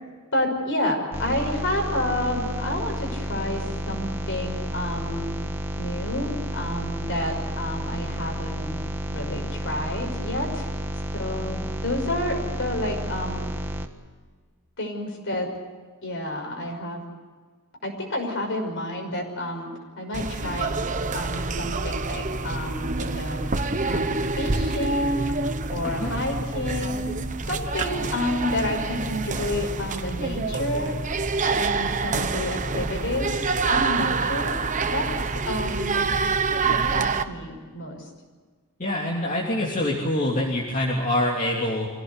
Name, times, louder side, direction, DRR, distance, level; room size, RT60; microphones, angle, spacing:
voice 1, 0.3-5.3 5.8-8.8 9.1-10.7 11.1-13.4 14.8-15.5 16.0-17.0 17.8-19.7 20.0-20.7 21.1-23.4 23.8-27.1 27.5-31.0 31.5-34.5 34.9-36.1 36.7-38.1, left 1 dB, 55° left, 3 dB, 5.9 m, -30 dB
sound 1, 1.1-13.9, equal, 10° right, 1.4 m, -31 dB
sound 2, 20.1-37.2, right 4 dB, 35° right, 1.0 m, -27 dB
voice 2, 25.8-26.2 38.8-41.9, left 1 dB, 35° left, -3 dB, 3.2 m, -25 dB
25.0 x 17.0 x 8.1 m, 1.5 s
head